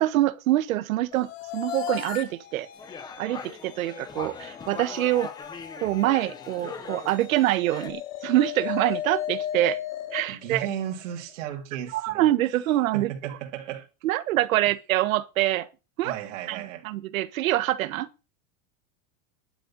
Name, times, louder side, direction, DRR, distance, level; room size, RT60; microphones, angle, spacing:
voice 1, 0.0-2.7 3.2-5.3 5.8-9.8 10.1-10.7 11.9-13.1 14.0-15.7 16.0-16.1 16.5-18.1, right 15 dB, 80° right, 1.4 m, -25 dB
sound 1, 1.1-11.3, left 10 dB, 70° left, 2.8 m, -37 dB
sound 2, 2.8-7.9, left 5 dB, 10° left, 0.9 m, -41 dB
voice 2, 10.3-12.2 12.9-13.9 16.0-16.9, right 9 dB, 60° right, 3.0 m, -35 dB
11.0 x 6.6 x 8.9 m
supercardioid pair, 180°, 40 cm